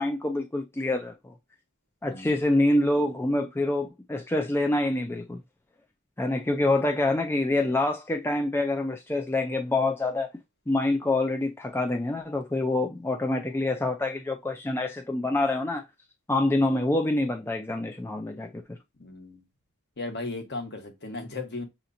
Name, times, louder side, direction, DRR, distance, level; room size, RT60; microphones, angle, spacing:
voice 1, 0.0-1.3 2.0-5.4 6.2-10.3 10.7-15.8 16.3-18.8, left 2 dB, 10° left, 0.4 m, -26 dB
voice 2, 2.0-2.3 19.0-19.5 20.0-21.6, left 2 dB, 50° left, 1.1 m, -36 dB
6.7 x 2.9 x 2.6 m
head